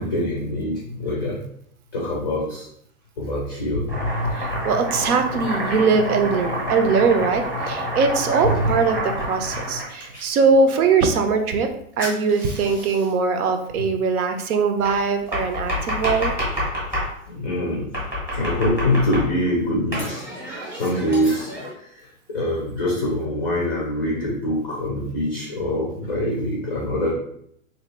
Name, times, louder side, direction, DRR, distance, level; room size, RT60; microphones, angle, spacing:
voice 1, 0.0-1.3 1.9-2.7 3.2-4.3 8.4-8.6 17.3-17.9 18.3-20.2 20.7-21.5 22.3-27.1, left 1 dB, 15° left, -4 dB, 0.4 m, -24 dB
Domestic sounds home sounds, 3.9-10.3 12.0-13.1 14.8-17.1 17.9-19.5 19.9-21.7, equal, 5° right, 0.8 m, -28 dB
voice 2, 4.3-11.7 12.0-16.3, right 4 dB, 85° right, 6 dB, 0.8 m, -21 dB
3.8 x 2.8 x 3.2 m, 0.70 s
supercardioid pair, 160°, 43 cm